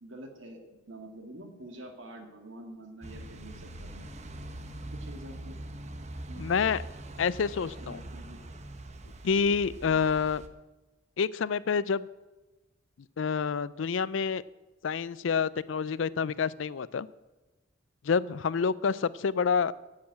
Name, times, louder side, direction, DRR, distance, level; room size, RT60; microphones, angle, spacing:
voice 1, 0.0-4.1 4.9-5.6 6.3-6.8 7.6-8.4, right 1 dB, 80° right, 4 dB, 2.1 m, -47 dB
sound 1, 3.0-10.5, right 1 dB, 35° right, 0.9 m, -43 dB
voice 2, 6.4-6.8 7.2-8.0 9.2-10.4 11.2-12.1 13.2-14.4 14.8-17.1 18.0-19.7, left 6 dB, 75° left, 19 dB, 0.4 m, -28 dB
10.5 x 7.6 x 8.7 m, 1.1 s
head